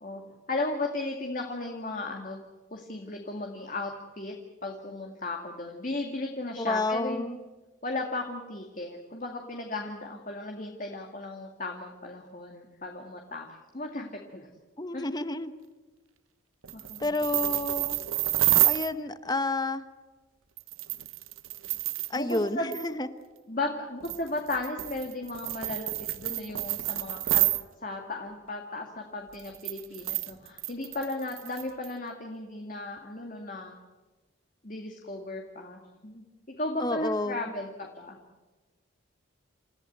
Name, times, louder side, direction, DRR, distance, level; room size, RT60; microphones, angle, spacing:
voice 1, 0.0-2.4 2.7-3.9 4.2-4.3 4.6-7.3 7.8-14.5 14.9-15.0 16.7-17.1 22.2-22.7 23.5-27.5 27.8-33.7 34.6-36.2 36.6-38.2, left 2 dB, 40° left, 2 dB, 2.1 m, -35 dB
voice 2, 6.6-7.4 14.8-15.5 17.0-18.0 18.7-19.8 22.1-23.1 36.8-37.5, left 2 dB, 20° left, 11 dB, 1.1 m, -30 dB
sound 1, 16.6-18.9 20.6-22.4 22.7-22.9 24.0-27.6 29.3-31.9, right 16 dB, 85° right, 0.9 m, -29 dB
29.0 x 15.0 x 9.3 m, 1.2 s
head